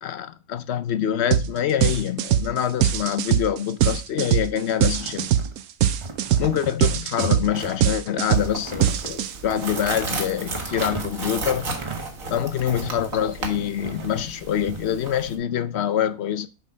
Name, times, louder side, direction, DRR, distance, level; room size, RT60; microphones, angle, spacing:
voice 1, 0.0-5.4 6.4-11.7 12.3-16.5, left 10 dB, 60° left, 0.8 m, -25 dB
sound 1, 1.3-1.5 1.8-9.6, right 10 dB, 85° right, 1.2 m, -21 dB
sound 2, 4.9-5.6 6.0-6.8 7.1-7.8 8.2-13.1 13.5-14.8, right 3 dB, 25° right, 0.8 m, -37 dB
sound 3, 8.3-15.4, right 3 dB, 65° right, 2.0 m, -34 dB
7.8 x 5.2 x 5.6 m
omnidirectional pair, 1.5 m